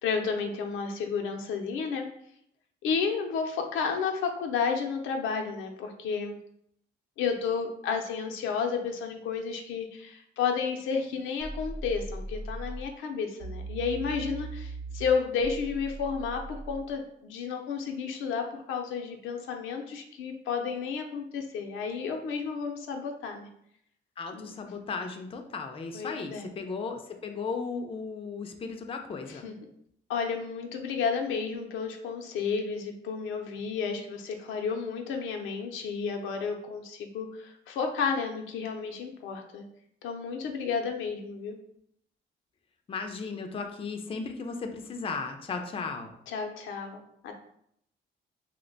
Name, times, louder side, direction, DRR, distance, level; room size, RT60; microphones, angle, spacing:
voice 1, 0.0-2.1 2.8-6.4 7.2-23.5 24.3-24.5 25.9-26.5 29.3-29.5 30.1-39.6 40.0-41.5 46.3-47.3, left 5 dB, 85° left, 3 dB, 0.5 m, -32 dB
sound 1, 11.4-12.9 13.4-16.9, right 2 dB, 70° right, 0.9 m, -39 dB
voice 2, 24.2-29.5 42.9-46.1, left 4 dB, 30° left, 4 dB, 0.4 m, -36 dB
2.8 x 2.1 x 3.8 m, 0.72 s
cardioid pair, 90°, 20 cm